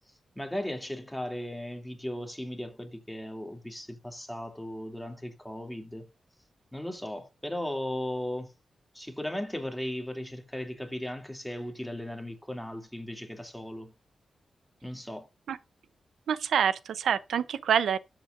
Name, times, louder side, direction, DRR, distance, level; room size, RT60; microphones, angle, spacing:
voice 1, 0.1-6.1 6.7-8.5 8.9-13.9 14.8-15.3, left 1 dB, 5° left, 2.6 m, -37 dB
voice 2, 16.3-18.0, right 8 dB, 85° right, 0.6 m, -26 dB
13.0 x 8.2 x 2.5 m
cardioid pair, 70°, 0 cm